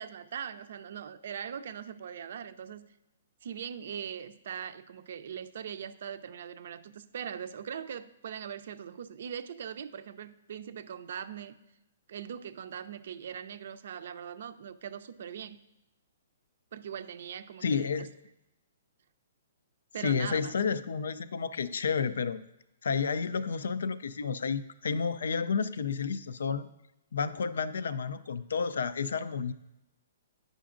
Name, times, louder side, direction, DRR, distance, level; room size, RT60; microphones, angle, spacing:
voice 1, 0.0-2.9 3.4-11.6 12.1-15.6 16.7-18.1 19.9-20.5, right 8 dB, 65° right, 12 dB, 0.4 m, -41 dB
voice 2, 17.6-18.1 20.0-22.4 22.8-26.7 27.1-29.5, left 5 dB, 75° left, 15 dB, 0.4 m, -31 dB
9.3 x 5.1 x 2.5 m, 0.89 s
hypercardioid pair, 135°, 0 cm